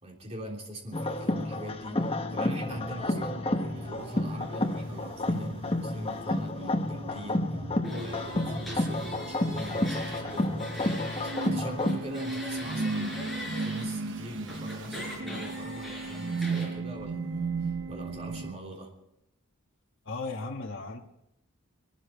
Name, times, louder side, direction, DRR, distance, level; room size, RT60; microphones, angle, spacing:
voice 1, 0.0-18.9, right 1 dB, 30° right, -1 dB, 3.2 m, -42 dB
sound 1, 0.9-12.0, left 1 dB, 25° left, 1.0 m, -30 dB
sound 2, 2.3-18.5, right 3 dB, 55° right, 0.9 m, -37 dB
sound 3, 7.8-11.5 11.8-13.8 14.5-16.7, left 1 dB, ahead, 4.5 m, -41 dB
voice 2, 20.0-21.0, left 3 dB, 55° left, 1 dB, 1.4 m, -36 dB
22.5 x 12.5 x 4.5 m, 0.84 s
head